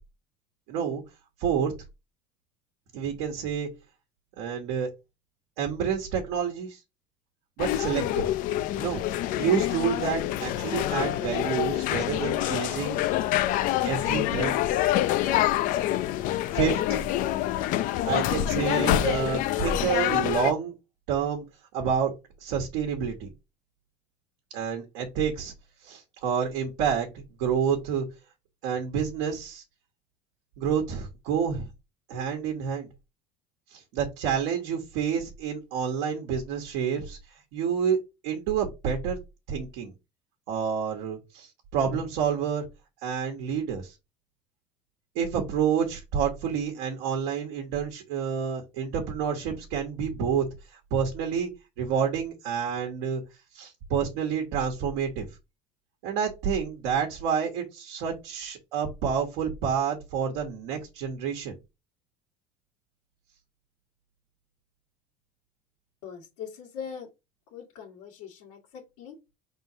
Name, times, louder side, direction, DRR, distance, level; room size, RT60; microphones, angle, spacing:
voice 1, 0.7-1.0 1.4-1.7 2.9-3.7 4.4-4.9 5.6-6.8 7.6-8.3 8.8-9.0 9.3-13.0 13.8-14.6 16.5-17.0 18.0-20.7 21.1-21.5 21.7-22.1 22.4-23.3 24.5-25.5 25.8-28.0 28.6-29.6 30.6-31.7 32.1-32.9 33.7-37.2 37.5-38.0 38.2-39.2 39.5-39.9 40.5-42.6 43.0-43.9 45.1-51.5 51.8-53.2 53.5-55.3 56.0-61.6, right 7 dB, 80° right, 3 dB, 1.2 m, -28 dB
sound 1, 7.6-20.5, left 13 dB, 60° left, 0.5 m, -26 dB
voice 2, 66.0-67.1 67.5-69.3, left 7 dB, 85° left, -4 dB, 1.6 m, -41 dB
4.8 x 3.7 x 2.7 m, 0.24 s
supercardioid pair, 110°, 15 cm